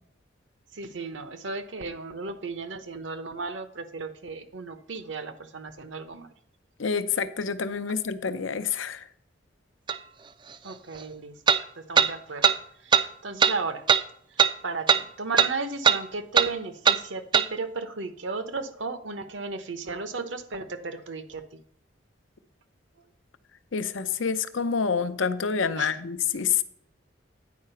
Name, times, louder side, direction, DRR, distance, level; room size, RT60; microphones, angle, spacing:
voice 1, 0.7-6.3 10.6-11.4 11.8-13.8 14.3-21.6 25.8-26.0, right 4 dB, 70° right, 10 dB, 0.9 m, -35 dB
voice 2, 6.8-9.0 23.7-26.6, left 6 dB, 80° left, 11 dB, 0.7 m, -27 dB
sound 1, 9.9-10.0 11.5-11.6 12.0-12.1 12.4-12.6 12.9-13.1 13.4-13.6 13.9-14.0 14.4-14.5 14.9-15.0 15.4-15.5 15.8-16.0 16.4-16.5 16.9-17.0 17.3-17.5, right 7 dB, 25° right, 0.3 m, -19 dB
9.5 x 4.8 x 5.6 m, 0.66 s
head